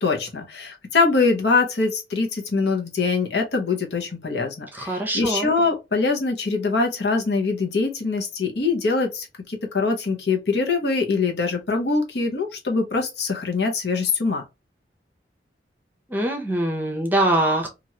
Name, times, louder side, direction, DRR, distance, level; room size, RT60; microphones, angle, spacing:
voice 1, 0.0-14.4, left 4 dB, 65° left, 0.9 m, -23 dB
voice 2, 4.7-5.5 16.1-17.7, right 1 dB, 10° right, 0.7 m, -23 dB
3.0 x 2.5 x 2.8 m
head